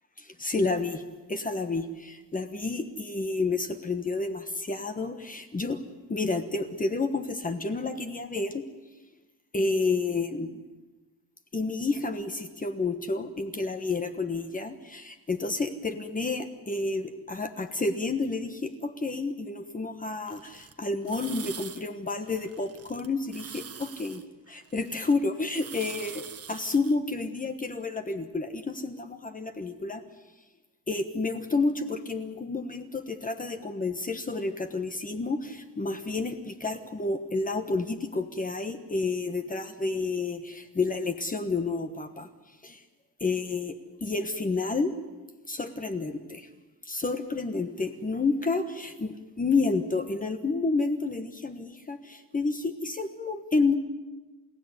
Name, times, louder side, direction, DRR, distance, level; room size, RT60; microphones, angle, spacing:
voice 1, 0.2-1.0 1.3-5.8 6.1-8.6 9.5-10.6 11.5-24.2 24.5-30.0 30.9-42.3 42.6-42.8 43.2-44.9 45.5-46.5 46.8-53.8, left 3 dB, 20° left, 7 dB, 1.3 m, -30 dB
sound 1, 20.3-20.7 21.0-21.8 22.1-23.1 23.3-25.1 25.5-26.9, right 7 dB, 35° right, 1.4 m, -44 dB
29.0 x 16.5 x 9.7 m, 1.2 s
cardioid pair, 150°, 40 cm